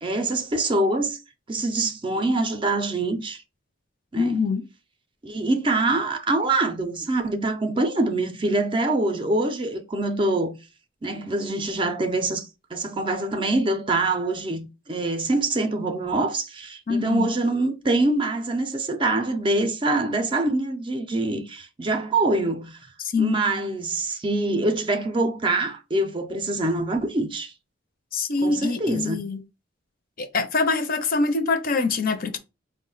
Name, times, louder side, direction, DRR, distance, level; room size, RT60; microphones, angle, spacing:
voice 1, 0.0-1.2 1.5-3.4 4.1-4.4 5.2-10.6 11.0-22.8 23.2-27.5 28.4-29.2, right 2 dB, 25° right, 0.5 m, -25 dB
voice 2, 4.2-4.6 16.9-17.3 23.0-23.4 28.1-29.4 30.2-32.4, left 4 dB, 45° left, 0.6 m, -24 dB
4.6 x 2.1 x 3.8 m
head